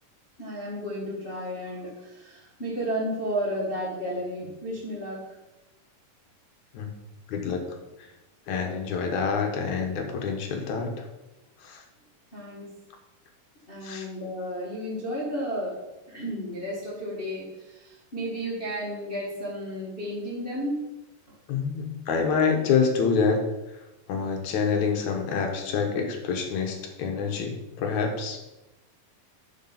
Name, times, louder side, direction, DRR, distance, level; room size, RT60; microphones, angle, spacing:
voice 1, 0.4-5.4 12.3-12.8 13.7-21.0, equal, 35° left, -7 dB, 0.9 m, -33 dB
voice 2, 7.3-7.6 8.0-8.1 8.5-11.0 11.6-11.8 13.8-14.1 21.5-23.4 24.1-28.4, left 5 dB, 65° left, 3 dB, 2.0 m, -27 dB
8.2 x 5.5 x 5.8 m, 0.99 s
omnidirectional pair, 4.5 m